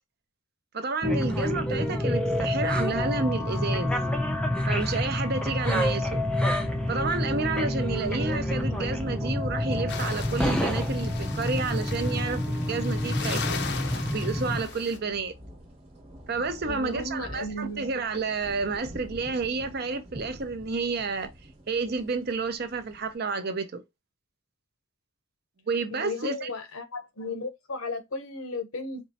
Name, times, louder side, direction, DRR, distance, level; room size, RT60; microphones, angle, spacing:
voice 1, 0.7-4.0 4.7-6.3 6.9-13.7 14.1-15.3 16.3-21.3 21.7-23.8 25.7-26.5, right 4 dB, 45° right, 0.6 m, -30 dB
sound 1, 1.0-14.6, left 1 dB, 5° left, 0.5 m, -28 dB
sound 2, 5.3-5.5 5.9-23.2, equal, 30° right, 1.1 m, -45 dB
sound 3, 9.9-15.0, left 5 dB, 50° left, 0.6 m, -38 dB
voice 2, 16.6-17.9 25.9-29.0, left 2 dB, 75° left, 0.9 m, -34 dB
4.4 x 3.0 x 2.8 m
head